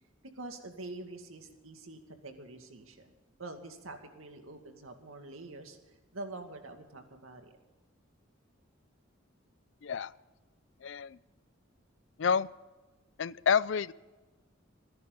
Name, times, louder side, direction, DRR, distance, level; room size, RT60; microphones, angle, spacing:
voice 1, 0.4-3.1 3.4-7.6, right 2 dB, 90° right, 5 dB, 2.2 m, -46 dB
voice 2, 10.8-11.2 12.2-12.5 13.2-13.9, left 6 dB, 60° left, 20 dB, 0.4 m, -28 dB
28.0 x 10.5 x 4.0 m, 1.2 s
head